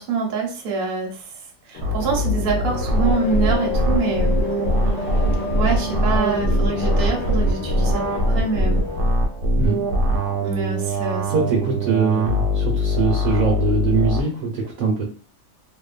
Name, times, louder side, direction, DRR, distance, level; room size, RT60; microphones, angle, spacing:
voice 1, 0.0-4.4 5.5-8.8 10.4-11.3, right 4 dB, 50° right, -2 dB, 0.7 m, -25 dB
sound 1, 1.7-9.1, left 3 dB, 65° left, 0.9 m, -29 dB
sound 2, 1.8-14.2, equal, 85° right, 1.2 m, -22 dB
voice 2, 11.3-15.1, right 5 dB, 70° right, -1 dB, 1.0 m, -22 dB
2.7 x 2.1 x 2.3 m, 0.41 s
omnidirectional pair, 1.7 m